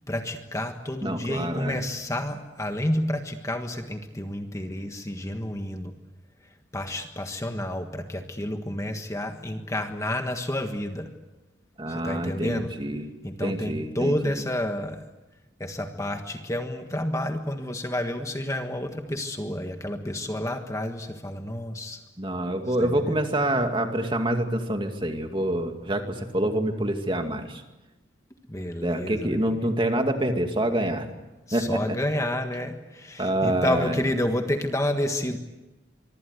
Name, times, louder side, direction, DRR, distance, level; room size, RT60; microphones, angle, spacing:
voice 1, 0.1-5.9 6.7-11.1 11.9-12.7 13.2-15.1 15.6-22.0 22.8-23.2 28.5-29.4 31.5-35.4, left 1 dB, 15° left, 5 dB, 1.5 m, -30 dB
voice 2, 1.0-1.8 11.8-13.1 13.4-14.2 22.2-27.6 28.8-31.1 31.5-32.0 33.2-34.0, right 1 dB, 25° right, 5 dB, 2.4 m, -26 dB
24.5 x 24.5 x 8.2 m, 1.0 s
head